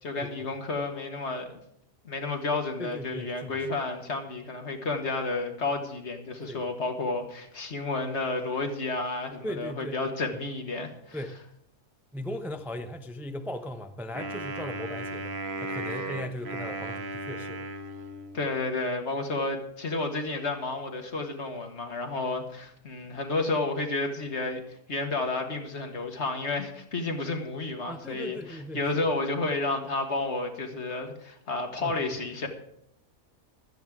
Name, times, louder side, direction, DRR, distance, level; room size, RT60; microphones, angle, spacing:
voice 1, 0.0-1.5 2.1-11.2 18.3-24.6 24.9-32.5, left 3 dB, 55° left, 5 dB, 1.9 m, -31 dB
voice 2, 2.8-3.7 6.4-6.6 9.4-10.0 10.3-10.4 11.1-11.5 12.1-15.3 15.6-17.6 27.9-28.9 31.8-32.2, equal, ahead, 7 dB, 0.5 m, -38 dB
Wind instrument woodwind instrument, 14.1-18.6, right 2 dB, 50° right, 1.3 m, -36 dB
16.0 x 12.5 x 3.7 m, 0.76 s
omnidirectional pair, 1.4 m